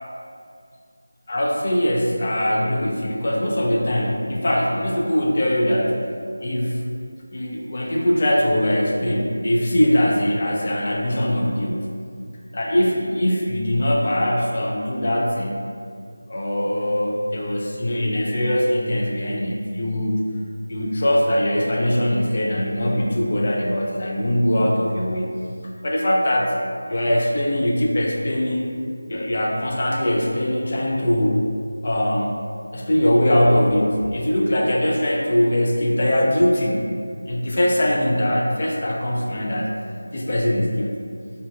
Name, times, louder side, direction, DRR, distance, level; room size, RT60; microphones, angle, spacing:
voice 1, 1.3-6.0 6.4-6.8 7.3-11.9 12.5-15.6 16.3-20.2 20.7-25.4 25.8-26.6 26.9-28.7 29.1-31.4 31.8-32.3 32.7-36.9 37.3-39.8 40.1-41.0, equal, 40° left, -1 dB, 0.4 m, -21 dB
3.7 x 2.1 x 2.3 m, 2.3 s
figure-of-eight pair, 170°, 0 cm